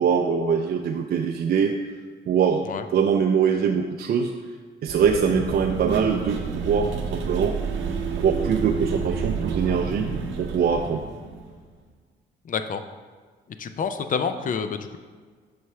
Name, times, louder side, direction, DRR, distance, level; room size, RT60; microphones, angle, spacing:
voice 1, 0.0-1.8 2.3-2.6 2.9-4.3 4.8-7.5 8.2-10.1 10.4-11.0, right 7 dB, 50° right, 3 dB, 0.4 m, -23 dB
sound 1, 4.9-11.7, right 5 dB, 75° right, 0.7 m, -29 dB
voice 2, 12.4-12.8 13.6-15.0, left 6 dB, 45° left, 9 dB, 0.4 m, -28 dB
6.5 x 4.7 x 3.2 m, 1.5 s
cardioid pair, 90°, 20 cm